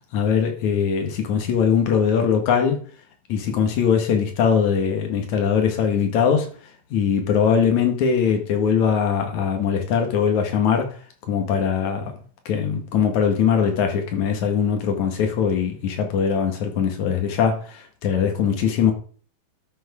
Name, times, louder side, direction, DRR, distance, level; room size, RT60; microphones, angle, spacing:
voice 1, 0.1-2.8 3.3-6.5 6.9-10.9 11.3-12.1 12.5-18.9, left 7 dB, 70° left, 3.0 m, -21 dB
12.0 x 6.1 x 5.2 m
omnidirectional pair, 3.5 m